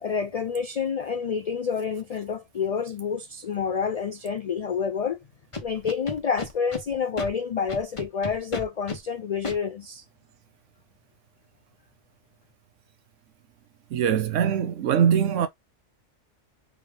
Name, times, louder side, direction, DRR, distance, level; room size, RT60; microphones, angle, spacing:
voice 1, 0.0-5.2 5.6-10.0, left 6 dB, 75° left, 0.3 m, -28 dB
Scratching (performance technique), 5.5-6.8 7.2-7.3 7.7-9.0 9.4-9.6, left 3 dB, 25° left, 1.1 m, -33 dB
voice 2, 13.9-15.5, right 8 dB, 80° right, 1.0 m, -22 dB
4.0 x 3.6 x 3.7 m
omnidirectional pair, 1.3 m